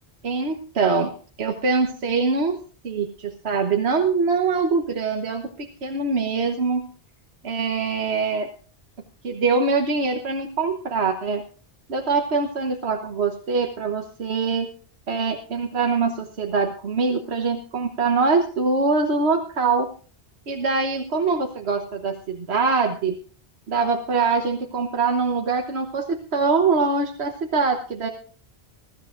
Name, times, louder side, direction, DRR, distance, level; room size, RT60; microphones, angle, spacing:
voice 1, 0.2-1.1 1.4-2.6 2.8-6.8 7.4-8.5 9.2-11.4 11.9-14.7 15.1-19.9 20.5-23.2 23.7-28.1, right 4 dB, 75° right, 3 dB, 1.3 m, -23 dB
21.5 x 13.0 x 2.5 m, 0.40 s
omnidirectional pair, 1.1 m